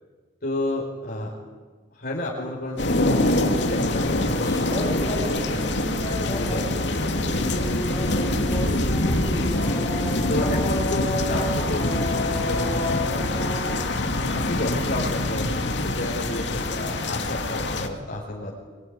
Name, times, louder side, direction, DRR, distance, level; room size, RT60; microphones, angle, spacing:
voice 1, 0.4-1.3 1.9-5.7 6.2-8.8 9.3-9.6 10.3-11.9 12.1-13.5 14.3-15.5 15.8-18.6, left 1 dB, 55° left, -3 dB, 4.5 m, -32 dB
sound 1, 2.8-17.9, left 1 dB, 75° left, 2.5 m, -25 dB
sound 2, 4.4-13.8, left 1 dB, 20° left, 4.0 m, -32 dB
23.5 x 23.5 x 9.7 m, 1.5 s
head